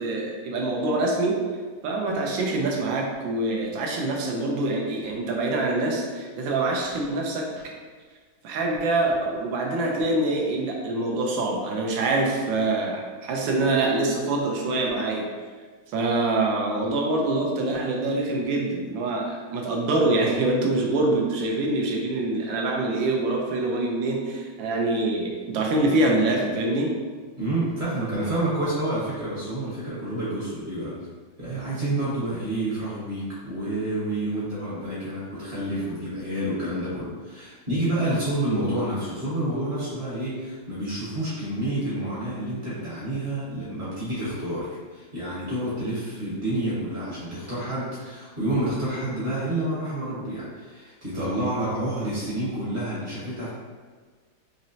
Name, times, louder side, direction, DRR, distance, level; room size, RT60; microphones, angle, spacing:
voice 1, 0.0-1.5 1.8-7.5 8.4-15.3 15.9-27.0, right 2 dB, 75° right, 0 dB, 1.3 m, -25 dB
voice 2, 27.4-30.9 31.4-53.5, right 1 dB, 35° right, -9 dB, 0.9 m, -29 dB
4.2 x 2.9 x 2.6 m, 1.5 s
omnidirectional pair, 2.2 m